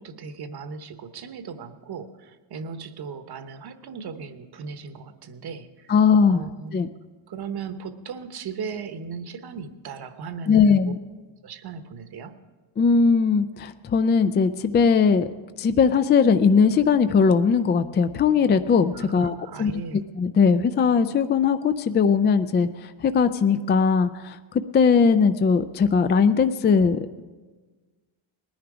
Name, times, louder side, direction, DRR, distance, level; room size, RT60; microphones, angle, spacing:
voice 1, 0.0-6.0 6.3-6.8 7.3-10.9 11.4-12.3 18.9-20.0, right 5 dB, 50° right, 10 dB, 1.1 m, -37 dB
voice 2, 5.9-6.4 6.7-6.9 10.5-11.0 12.8-15.3 15.6-24.4 24.7-27.2, left 5 dB, 25° left, 10 dB, 0.3 m, -20 dB
19.5 x 10.5 x 4.9 m, 1.3 s
cardioid pair, 115°, 49 cm